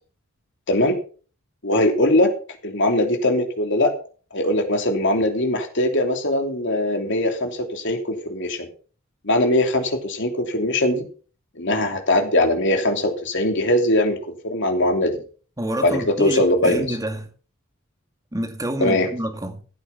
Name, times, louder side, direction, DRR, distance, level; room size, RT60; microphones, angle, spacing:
voice 1, 1.6-2.3 2.6-3.9 4.3-8.7 9.2-11.1 11.6-14.2 14.4-15.2 15.8-17.0 18.8-19.1, left 1 dB, 60° left, 3.1 m, -21 dB
voice 2, 15.6-17.3 18.3-19.6, right 1 dB, 15° right, 2.1 m, -28 dB
15.0 x 8.6 x 5.6 m
head